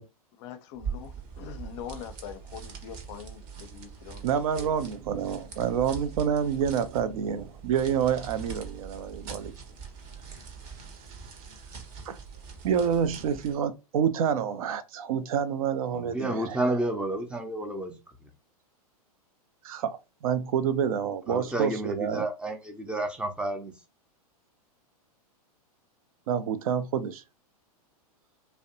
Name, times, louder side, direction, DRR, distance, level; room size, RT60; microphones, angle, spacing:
voice 1, 0.4-4.8 5.3-5.6, left 9 dB, 45° left, 0.5 m, -43 dB
sound 1, 0.7-13.6, right 6 dB, 40° right, 0.7 m, -42 dB
voice 2, 4.2-9.5 12.1-12.2 12.6-16.9 19.6-22.2 26.3-27.2, right 8 dB, 65° right, 0.4 m, -28 dB
voice 3, 15.9-18.0 21.3-23.7, right 1 dB, 5° right, 0.4 m, -30 dB
2.6 x 2.1 x 2.6 m
hypercardioid pair, 110°, 20 cm